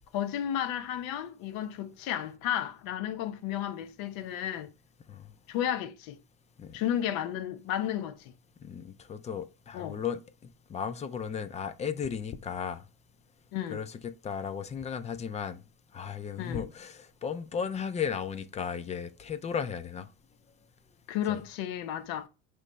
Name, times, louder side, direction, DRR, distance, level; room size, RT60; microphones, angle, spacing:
voice 1, 0.1-4.7 5.5-6.2 6.7-8.3 9.7-10.0 13.5-13.8 16.4-16.7 21.1-22.3, left 10 dB, 60° left, 0.8 m, -33 dB
voice 2, 8.6-10.2 10.7-12.8 13.7-15.6 15.9-20.1 21.3-21.4, left 7 dB, 20° left, 0.3 m, -35 dB
5.5 x 3.1 x 3.1 m
supercardioid pair, 95°, 40 cm